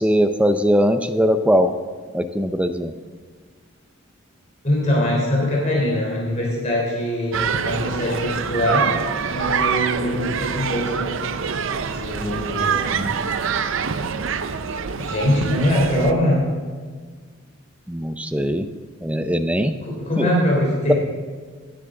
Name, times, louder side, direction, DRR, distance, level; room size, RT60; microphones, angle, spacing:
voice 1, 0.0-1.7 2.1-2.9 17.9-18.7 19.0-19.8 20.2-20.3, equal, 5° right, 8 dB, 0.5 m, -20 dB
voice 2, 4.6-9.0 9.2-11.1 11.9-13.1 14.9-16.5 19.8-20.9, left 1 dB, 35° left, -3 dB, 3.4 m, -22 dB
sound 1, 7.3-16.1, right 6 dB, 65° right, 0.6 m, -25 dB
17.0 x 10.5 x 3.8 m, 1.5 s
head